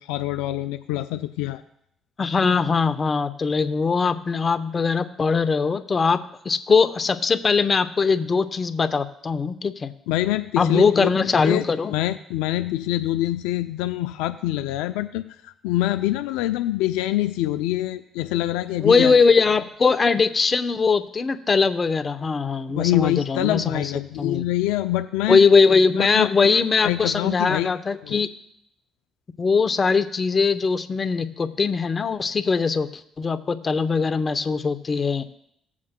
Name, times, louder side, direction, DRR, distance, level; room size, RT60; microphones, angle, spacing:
voice 1, 0.0-1.6 10.1-11.1 11.4-11.6 11.9-19.2 22.7-25.4 26.0-27.7 28.0-28.2, left 15 dB, 85° left, 9 dB, 0.3 m, -25 dB
voice 2, 2.2-6.2 6.4-9.9 10.6-11.9 18.8-23.9 24.2-24.4 25.3-28.3 29.4-32.9 33.2-35.2, left 5 dB, 35° left, 10 dB, 0.8 m, -21 dB
17.5 x 7.4 x 2.2 m, 0.74 s
supercardioid pair, 65°, 0 cm